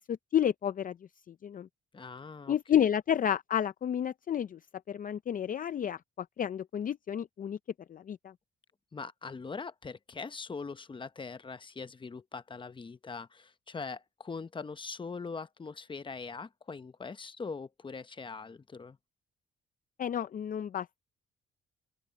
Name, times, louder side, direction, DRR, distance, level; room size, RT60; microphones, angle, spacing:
voice 1, 0.1-1.0 1.3-1.7 2.5-4.6 4.9-7.6 7.9-8.3 20.0-21.0, left 9 dB, 45° left, 0.5 m, -31 dB
voice 2, 1.9-2.9 8.9-19.0, left 4 dB, 25° left, 0.9 m, -42 dB
open air
cardioid pair, 90°, 20 cm